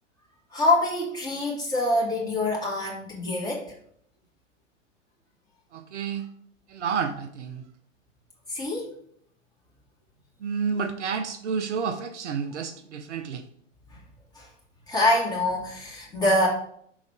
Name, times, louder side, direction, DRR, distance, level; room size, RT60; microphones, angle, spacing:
voice 1, 0.5-3.6 8.5-8.9 14.4-14.5 14.9-16.5, left 1 dB, 10° left, -4 dB, 2.2 m, -25 dB
voice 2, 5.7-6.3 6.7-7.6 10.4-13.4, right 6 dB, 65° right, 8 dB, 0.7 m, -30 dB
6.2 x 3.9 x 5.0 m, 0.65 s
figure-of-eight pair, 95°, 38 cm